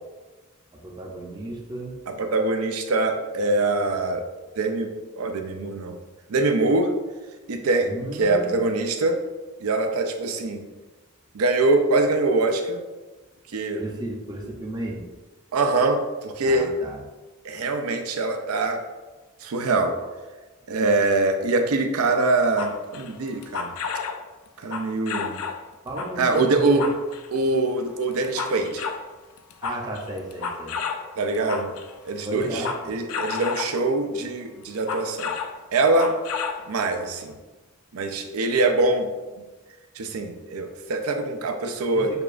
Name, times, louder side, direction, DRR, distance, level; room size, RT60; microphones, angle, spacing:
voice 1, 0.8-2.2 7.8-8.5 13.8-15.0 16.4-17.0 20.0-20.1 25.8-26.9 29.6-31.2 32.2-32.9 42.1-42.2, right 1 dB, 20° right, -2 dB, 0.6 m, -34 dB
voice 2, 2.1-4.2 4.6-4.9 5.2-5.9 6.3-6.9 7.5-7.9 8.2-9.2 9.6-10.6 11.3-12.8 13.5-13.8 15.5-16.7 17.4-18.8 19.4-20.0 20.7-23.7 24.6-25.4 26.2-26.8 27.3-28.8 31.2-31.7 32.1-35.3 35.7-36.2 36.7-37.4 37.9-39.1 40.0-42.1, right 2 dB, 90° right, 5 dB, 0.5 m, -23 dB
sound 1, 22.5-24.2 24.6-25.6 26.0-27.4 27.9-29.1 29.4-31.9 32.4-33.8 34.6-35.6 35.9-36.7 37.0-37.1, left 5 dB, 75° left, 0.4 m, -32 dB
6.6 x 2.3 x 2.5 m, 1.2 s
head